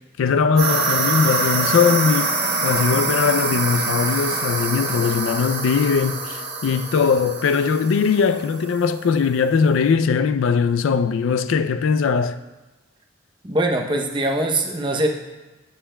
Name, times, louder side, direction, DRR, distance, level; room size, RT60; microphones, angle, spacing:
voice 1, 0.2-2.3 2.6-12.4, left 5 dB, 75° left, 0.4 m, -20 dB
sound 1, 0.6-8.8, right 3 dB, 50° right, 1.8 m, -25 dB
voice 2, 13.4-15.1, right 1 dB, 25° right, 0.7 m, -22 dB
12.5 x 6.8 x 2.2 m
head